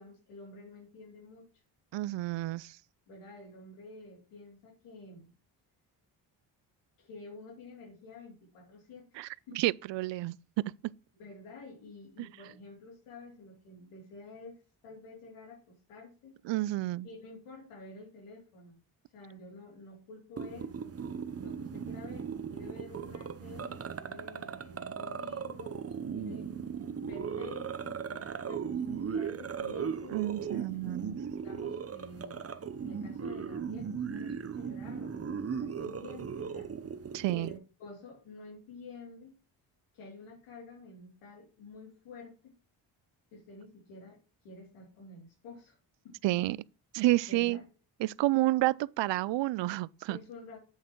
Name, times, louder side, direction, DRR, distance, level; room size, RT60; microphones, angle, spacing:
voice 1, 0.0-1.5 3.1-5.3 7.0-9.6 11.1-16.4 17.0-18.8 19.1-20.9 21.4-26.5 27.0-30.9 31.3-32.4 32.8-36.7 37.3-39.4 39.9-42.5 43.3-44.2 44.4-45.8 46.0-46.2 47.3-47.7 50.1-50.6, left 3 dB, 80° left, 3.1 m, -50 dB
voice 2, 1.9-2.8 9.2-10.9 12.2-12.3 16.5-17.1 30.1-31.2 37.1-37.5 46.2-46.6 46.9-47.6 48.0-50.2, right 17 dB, 60° right, 0.5 m, -30 dB
sound 1, 20.4-37.6, right 6 dB, 30° right, 0.8 m, -38 dB
8.5 x 7.4 x 3.1 m
supercardioid pair, 55°, 50 cm